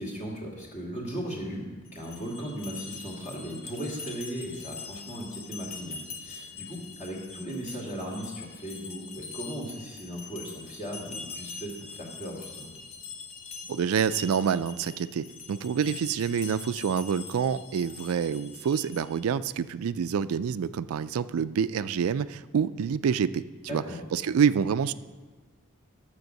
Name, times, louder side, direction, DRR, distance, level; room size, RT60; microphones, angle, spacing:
voice 1, 0.0-12.7 23.7-24.0, equal, 35° left, -2 dB, 2.5 m, -37 dB
sound 1, 1.9-19.3, left 5 dB, 65° left, 1.1 m, -43 dB
voice 2, 13.7-23.4 23.7-23.8 24.1-24.9, right 7 dB, 80° right, 14 dB, 0.4 m, -27 dB
10.5 x 7.0 x 6.5 m, 1.3 s
head